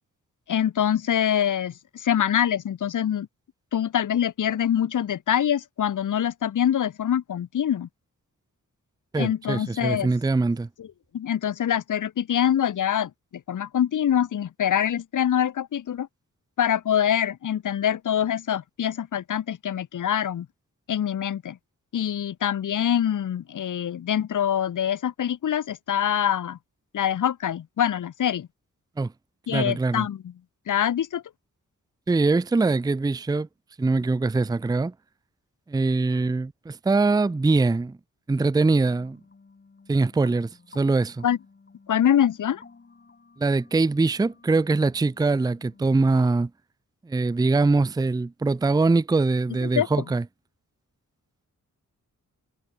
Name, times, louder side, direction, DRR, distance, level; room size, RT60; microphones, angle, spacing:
voice 1, 0.5-3.3 3.7-7.9 9.2-10.1 10.8-10.9 11.1-13.1 13.5-16.1 16.6-20.5 20.9-21.6 21.9-26.6 26.9-28.5 29.5-30.3 30.7-31.2 41.2-41.4 41.9-42.6 49.6-50.0, left 9 dB, 70° left, 0.9 m, -24 dB
voice 2, 9.1-10.7 29.0-29.1 29.5-30.1 32.1-33.5 33.8-34.9 35.7-38.0 38.3-39.2 39.9-41.2 43.4-46.5 47.1-50.2, right 3 dB, 10° right, 0.5 m, -23 dB
sound 1, 38.8-46.4, left 4 dB, 35° left, 4.8 m, -54 dB
wide cardioid pair, 150°, 32 cm